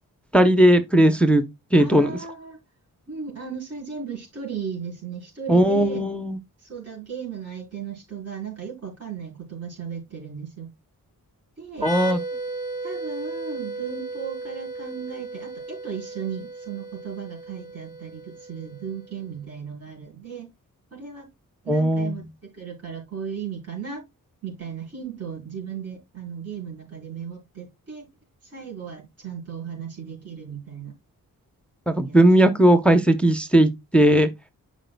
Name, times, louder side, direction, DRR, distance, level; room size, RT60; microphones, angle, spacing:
voice 1, 0.3-1.4 1.7-2.2 5.5-6.4 11.8-12.2 21.7-22.1 31.9-34.3, right 1 dB, 5° left, 0.7 m, -17 dB
voice 2, 1.8-2.6 3.1-6.0 6.6-10.7 11.6-11.9 12.8-20.5 20.9-21.3 21.6-24.0 24.4-28.1 28.4-30.9 32.0-32.2, right 6 dB, 45° right, 4.4 m, -36 dB
sound 1, 11.7-19.3, right 2 dB, 75° right, 3.3 m, -35 dB
12.0 x 5.1 x 2.2 m
wide cardioid pair, 165°, 35 cm